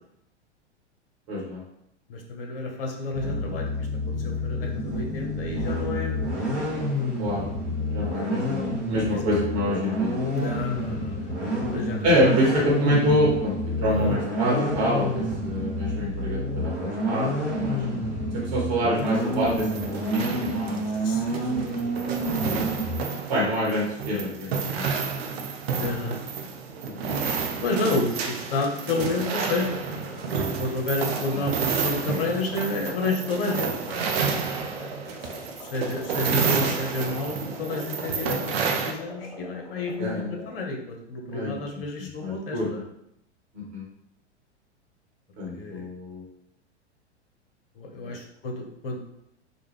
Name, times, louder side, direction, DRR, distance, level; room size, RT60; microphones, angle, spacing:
voice 1, 1.3-1.6 3.2-3.6 4.2-4.7 7.2-7.4 7.8-10.3 12.0-18.0 18.3-20.8 23.3-24.9 26.8-27.1 27.9-28.0 31.3-31.4 36.4-36.5 40.0-40.3 41.3-41.6 42.0-42.8 43.5-43.8 45.4-46.2 48.0-48.1, equal, 40° right, -4 dB, 1.1 m, -27 dB
voice 2, 2.1-6.4 8.1-8.2 9.1-9.2 10.3-12.4 13.8-14.2 18.7-19.1 21.0-22.2 24.1-24.2 25.8-26.2 27.6-34.0 35.1-42.8 45.5-45.9 47.8-49.0, left 3 dB, 55° left, 1 dB, 0.7 m, -31 dB
sound 1, 3.1-23.0, equal, 80° right, 0.9 m, -29 dB
sound 2, 19.0-38.9, right 5 dB, 60° right, 0.5 m, -30 dB
sound 3, 31.1-40.2, left 2 dB, ahead, 0.3 m, -43 dB
2.3 x 2.1 x 3.1 m, 0.76 s
figure-of-eight pair, 95°, 35 cm